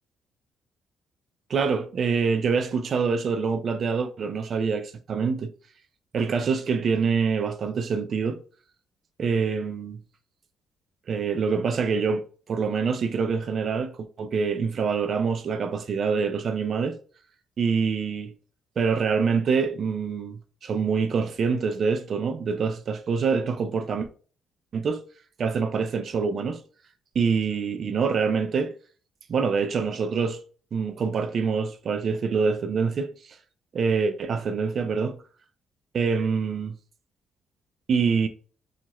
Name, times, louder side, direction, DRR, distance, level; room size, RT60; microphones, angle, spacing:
voice 1, 1.5-5.5 6.1-8.4 9.2-10.0 11.1-17.0 17.6-18.3 18.8-24.1 24.7-25.0 25.4-26.6 27.2-28.7 29.3-30.4 30.7-33.1 33.7-35.2 35.9-36.7 37.9-38.3, right 5 dB, 55° right, 0.4 m, -25 dB
2.7 x 2.4 x 2.9 m
cardioid pair, 90°, 0 cm